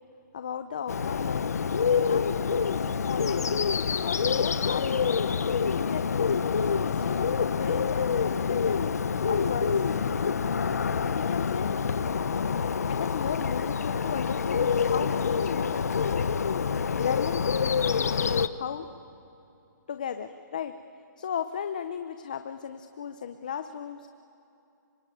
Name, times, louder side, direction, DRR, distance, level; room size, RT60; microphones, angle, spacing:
voice 1, 0.3-1.7 2.0-2.4 3.1-5.4 5.7-8.9 9.2-9.8 11.1-11.7 12.9-16.3 16.9-18.9 19.9-20.7 21.2-24.1, left 8 dB, 25° left, 10 dB, 0.6 m, -36 dB
Bird, 0.9-18.5, left 6 dB, 55° left, 0.9 m, -27 dB
25.5 x 24.5 x 9.1 m, 2.7 s
hypercardioid pair, 180°, 10 cm